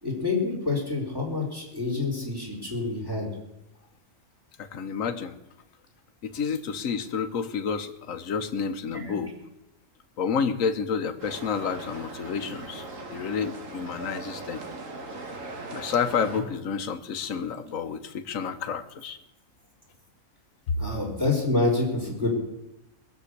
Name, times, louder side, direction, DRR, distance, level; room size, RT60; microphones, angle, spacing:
voice 1, 0.0-3.3 8.9-9.1 20.8-22.3, left 3 dB, 15° right, -1 dB, 4.5 m, -27 dB
voice 2, 4.6-5.4 6.2-9.3 10.2-14.6 15.7-19.2, left 6 dB, 75° left, 8 dB, 1.4 m, -30 dB
sound 1, 11.2-16.4, right 3 dB, 70° right, 2.2 m, -39 dB
21.0 x 7.1 x 8.3 m, 0.91 s
omnidirectional pair, 1.4 m